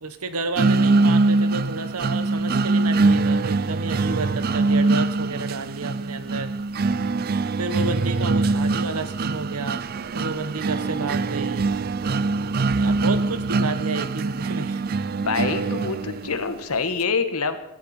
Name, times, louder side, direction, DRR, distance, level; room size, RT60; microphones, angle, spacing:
voice 1, 0.0-6.5 7.6-9.8 10.1-11.7 12.7-14.8, right 3 dB, 80° right, 11 dB, 1.3 m, -31 dB
sound 1, 0.6-16.5, right 3 dB, 40° right, 0.4 m, -23 dB
voice 2, 15.2-17.6, left 4 dB, 80° left, 10 dB, 1.5 m, -26 dB
18.5 x 13.0 x 4.4 m, 0.84 s
head